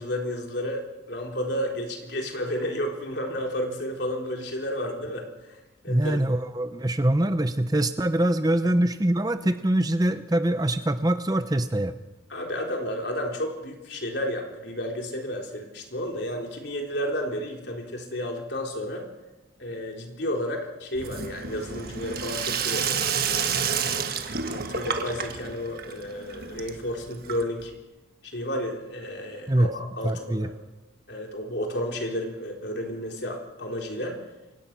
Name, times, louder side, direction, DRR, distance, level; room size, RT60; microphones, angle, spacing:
voice 1, 0.0-5.3 5.8-6.2 12.3-19.0 19.6-23.9 24.5-27.7 28.2-30.5 31.1-34.2, equal, 55° left, 1 dB, 4.0 m, -32 dB
voice 2, 5.9-11.9 29.5-29.7 30.0-30.5, right 1 dB, 20° right, 10 dB, 0.7 m, -24 dB
Sink (filling or washing), 20.9-27.7, right 6 dB, 50° right, 1.5 m, -30 dB
28.5 x 17.0 x 6.1 m, 1.1 s
head